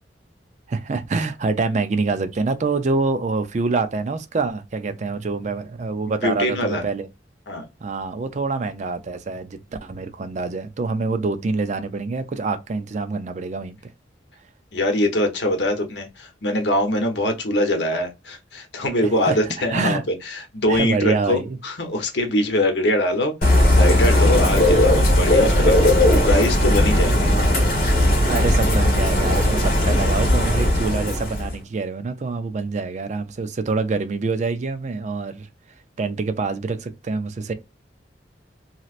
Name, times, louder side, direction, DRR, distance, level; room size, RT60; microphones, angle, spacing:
voice 1, 0.7-7.1 7.8-13.8 19.0-19.4 19.7-20.0 20.7-21.5 24.6-24.8 28.3-35.5 36.0-37.5, right 3 dB, 40° right, 0.4 m, -26 dB
voice 2, 6.2-6.8 7.5-7.6 14.7-20.0 20.2-27.3, left 1 dB, 75° left, 0.9 m, -23 dB
Bird / Rain, 23.4-31.6, left 1 dB, 50° left, 1.4 m, -17 dB
3.1 x 2.8 x 2.4 m
head